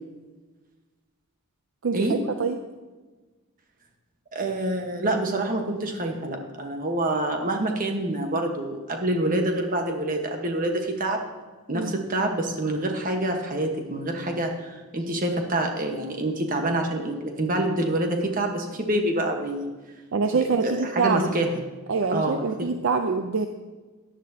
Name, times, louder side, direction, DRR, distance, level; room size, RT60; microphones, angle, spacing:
voice 1, 1.8-2.6 11.7-12.0 20.1-21.4 21.9-23.5, right 4 dB, 60° right, 7 dB, 0.5 m, -25 dB
voice 2, 4.3-11.2 11.7-19.7 20.3-21.6 22.1-22.7, right 1 dB, 40° right, 3 dB, 1.3 m, -26 dB
14.0 x 10.5 x 2.8 m, 1.3 s
head